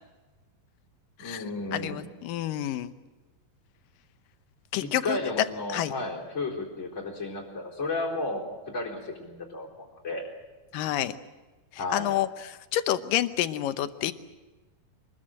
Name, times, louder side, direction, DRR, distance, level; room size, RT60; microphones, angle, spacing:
voice 1, 1.2-2.1 4.8-10.2 11.8-12.2, left 2 dB, 20° left, -3 dB, 4.1 m, -33 dB
voice 2, 1.7-2.9 4.7-5.2 5.7-5.9 10.7-11.1 11.9-14.1, left 12 dB, 80° left, 11 dB, 2.6 m, -29 dB
25.5 x 21.0 x 7.7 m, 1.2 s
omnidirectional pair, 3.9 m